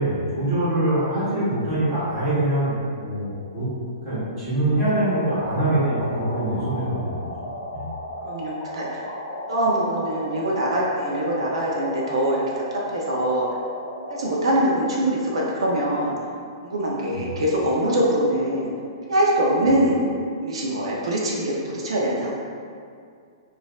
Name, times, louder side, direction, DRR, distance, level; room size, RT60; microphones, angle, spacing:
voice 1, 0.0-3.6 4.0-7.2 7.7-7.8 17.1-17.3, right 1 dB, 15° right, -13 dB, 1.3 m, -24 dB
sound 1, 4.7-14.7, left 1 dB, 30° left, 0.5 m, -35 dB
voice 2, 8.3-9.0 9.5-12.4 12.9-13.5 14.1-16.1 16.6-18.7 19.1-20.1 20.4-22.3, right 1 dB, 80° right, -4 dB, 0.6 m, -23 dB
4.2 x 2.5 x 2.3 m, 2.3 s
hypercardioid pair, 175°, 3 cm